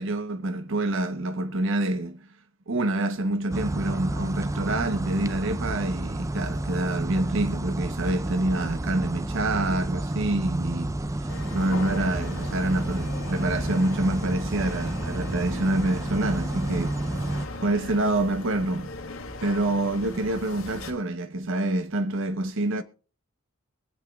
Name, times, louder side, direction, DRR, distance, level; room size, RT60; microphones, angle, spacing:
voice 1, 0.0-2.3 2.7-18.9 19.4-22.8, right 2 dB, 65° right, 0.8 m, -27 dB
sound 1, 3.5-17.5, right 1 dB, 15° right, 0.6 m, -30 dB
sound 2, 11.3-20.9, left 2 dB, 80° left, 2.3 m, -39 dB
23.0 x 8.1 x 2.2 m
head